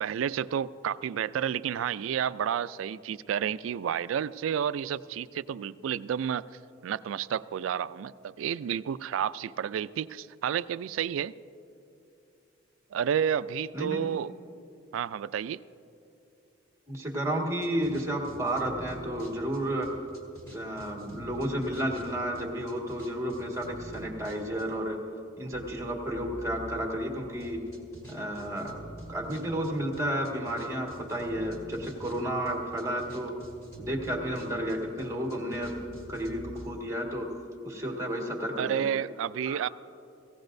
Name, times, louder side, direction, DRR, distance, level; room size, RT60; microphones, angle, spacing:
voice 1, 0.0-6.4 6.8-11.3 12.9-14.3 14.9-15.6 38.6-39.7, right 8 dB, 80° right, 16 dB, 0.3 m, -30 dB
voice 2, 13.7-14.0 16.9-20.0 20.5-25.0 25.4-27.7 28.1-28.8 29.1-33.4 33.8-35.8 36.1-37.4 37.6-38.8 39.4-39.6, right 1 dB, 15° right, -1 dB, 1.7 m, -32 dB
sound 1, 17.6-24.9 25.5-36.7, right 1 dB, 15° left, 2.1 m, -47 dB
18.0 x 16.0 x 2.6 m, 2.7 s
head